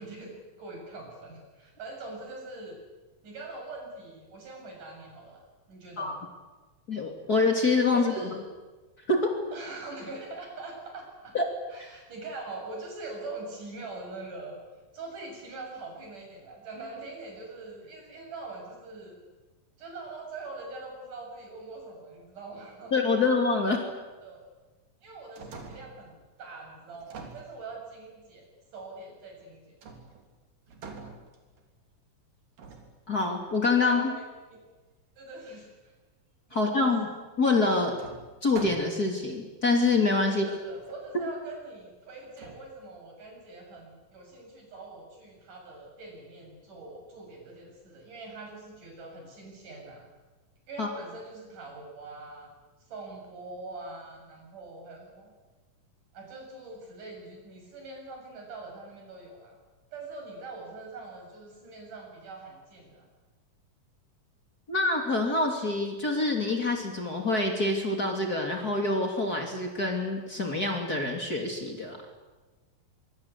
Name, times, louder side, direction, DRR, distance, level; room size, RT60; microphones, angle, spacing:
voice 1, 0.0-2.8 3.2-6.2 7.9-8.4 9.5-11.3 11.7-14.6 14.9-19.2 19.8-23.3 23.9-24.4 25.0-28.5 28.7-29.8 33.8-34.2 34.5-34.6 35.2-35.9 36.5-36.6 40.3-50.1 50.7-52.5 52.9-55.3 56.1-59.6 59.9-63.1, right 3 dB, 70° right, 1 dB, 8.7 m, -43 dB
voice 2, 6.9-8.4 9.1-9.4 11.3-11.5 22.9-23.8 33.1-34.1 36.5-38.0 38.4-40.5 50.8-50.9 64.7-72.0, left 3 dB, 30° left, 2 dB, 3.2 m, -26 dB
sound 1, 25.1-26.1 26.9-28.1 29.8-30.3 30.7-31.8 32.6-33.5 37.0-37.1 38.0-39.2 39.9-40.0 40.4-41.0 42.4-42.6, right 4 dB, 90° right, 5.0 m, -45 dB
24.5 x 24.0 x 8.3 m, 1.2 s
omnidirectional pair, 3.8 m